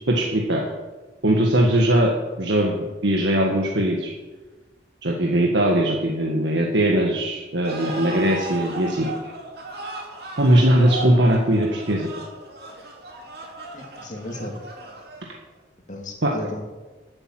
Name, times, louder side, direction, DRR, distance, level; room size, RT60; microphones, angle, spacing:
voice 1, 0.1-0.7 1.2-4.1 5.0-9.1 10.4-12.1 16.2-16.3, right 1 dB, 75° right, 0 dB, 1.7 m, -20 dB
sound 1, 7.6-15.5, right 2 dB, 60° right, 2.6 m, -36 dB
voice 2, 13.7-14.5 15.9-16.6, left 1 dB, 40° left, 1 dB, 2.5 m, -34 dB
12.0 x 8.8 x 7.7 m, 1.2 s
head